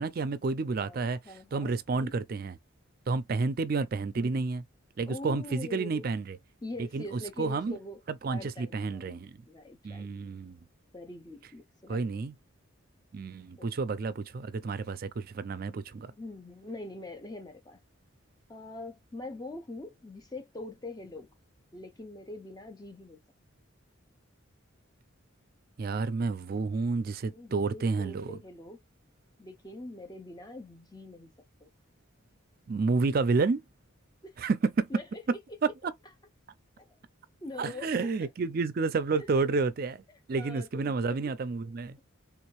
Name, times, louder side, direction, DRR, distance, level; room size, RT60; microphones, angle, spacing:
voice 1, 0.0-1.2 1.5-2.5 3.1-4.6 5.0-6.4 6.9-7.7 8.2-9.4 9.8-10.6 11.9-12.3 13.1-16.1 25.8-28.4 32.7-33.6 34.4-34.9 37.6-40.0 40.3-42.0, right 4 dB, 45° right, 0.4 m, -30 dB
voice 2, 0.7-2.1 4.1-4.4 5.1-6.1 6.6-8.0 8.3-10.1 10.9-12.0 13.6-13.7 16.1-17.8 18.5-21.3 21.7-23.2 27.3-28.8 29.4-31.3 31.6-31.7 34.2-34.4 34.9-35.4 36.8-37.0 37.4-38.3 39.1-39.5 40.1-41.3, left 2 dB, 20° left, 0.5 m, -43 dB
3.5 x 2.7 x 3.0 m
head